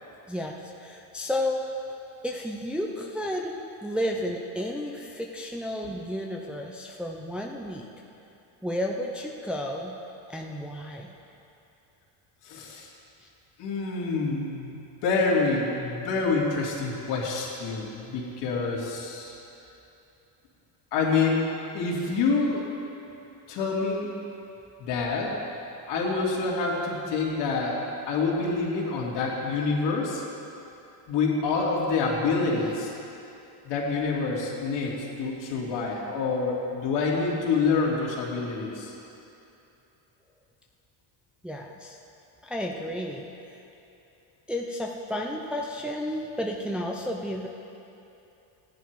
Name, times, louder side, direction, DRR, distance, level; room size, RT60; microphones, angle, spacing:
voice 1, 0.3-1.7 2.2-3.5 3.8-7.9 8.6-9.9 10.3-11.1 41.4-42.0 42.4-43.3 44.5-47.5, left 1 dB, ahead, -1 dB, 0.6 m, -32 dB
voice 2, 12.4-12.9 13.6-14.8 15.0-19.4 20.9-21.4 21.7-22.6 23.5-24.1 24.8-25.4 25.9-27.8 28.1-30.2 31.1-32.9 33.6-38.9, left 4 dB, 65° left, -4 dB, 2.9 m, -27 dB
15.5 x 10.5 x 4.7 m, 2.8 s
cardioid pair, 140°, 47 cm